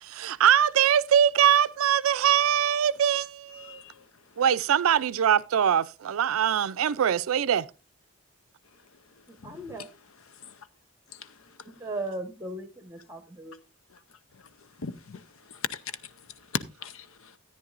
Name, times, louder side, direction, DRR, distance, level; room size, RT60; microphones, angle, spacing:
voice 1, 0.0-3.8 4.4-7.6, right 9 dB, 80° right, 0.4 m, -23 dB
voice 2, 3.5-4.0 9.4-9.6 10.4-10.6 11.1-11.3 14.8-15.2 15.5-15.8 16.5-17.3, left 6 dB, 75° left, 0.7 m, -37 dB
voice 3, 9.3-9.9 11.8-13.6, right 2 dB, 15° right, 1.2 m, -37 dB
13.5 x 9.6 x 2.5 m
head